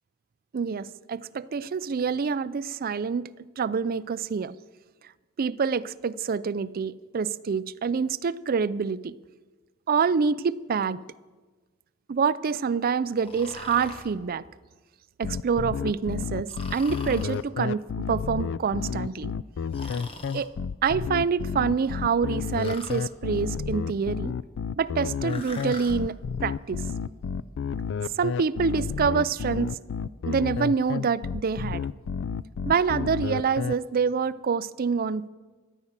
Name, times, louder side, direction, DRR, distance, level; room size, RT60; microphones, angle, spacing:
voice 1, 0.5-3.3 3.6-4.6 5.4-9.2 9.9-11.0 12.1-14.4 15.2-19.3 20.3-20.5 20.8-24.3 24.8-26.8 28.1-29.8 30.3-31.9 32.6-35.3, right 5 dB, 45° right, 0.4 m, -26 dB
Breathing, 13.2-14.1 16.5-17.4 19.7-20.5 22.6-23.1 25.3-26.0, left 2 dB, 30° left, 1.3 m, -42 dB
sound 1, 15.2-33.7, left 6 dB, 60° left, 0.3 m, -31 dB
13.5 x 10.0 x 7.3 m
head